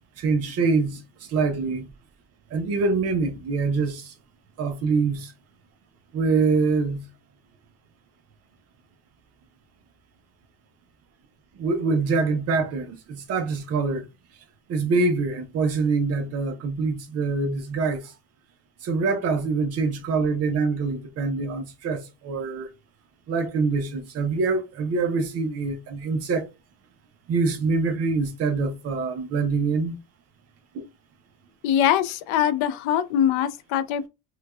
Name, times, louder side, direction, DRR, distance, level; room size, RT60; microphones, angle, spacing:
voice 1, 0.2-1.0 1.3-1.9 2.5-4.0 4.6-5.3 6.1-7.0 11.6-14.0 14.7-18.0 18.8-22.7 23.3-26.5 27.3-30.0, right 4 dB, 35° right, 0.5 m, -24 dB
voice 2, 31.6-34.1, left 10 dB, 90° left, 0.6 m, -22 dB
4.5 x 2.3 x 2.3 m
cardioid pair, 180°, 46 cm